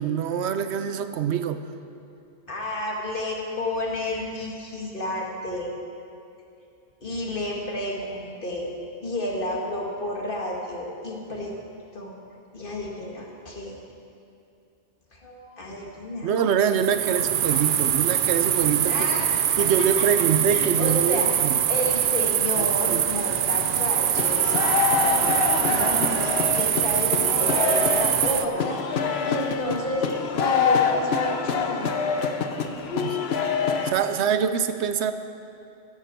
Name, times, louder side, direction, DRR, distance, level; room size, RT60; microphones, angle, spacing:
voice 1, 0.0-1.6 16.2-19.1 19.6-21.6 22.6-23.0 25.7-26.3 32.9-33.2 33.8-35.1, right 7 dB, 80° right, 10 dB, 0.9 m, -25 dB
voice 2, 2.5-5.7 7.0-8.7 9.0-11.5 11.9-12.1 12.5-13.8 15.1-16.3 18.9-20.1 20.5-21.3 21.7-24.6 25.0-30.1 30.3-31.9 32.6-33.0, left 1 dB, 50° left, -1 dB, 2.0 m, -31 dB
sound 1, 16.7-28.4, right 10 dB, 60° right, 0.6 m, -23 dB
sound 2, 24.2-33.9, left 6 dB, 70° left, 1.1 m, -25 dB
15.0 x 12.5 x 4.5 m, 2.6 s
omnidirectional pair, 1.1 m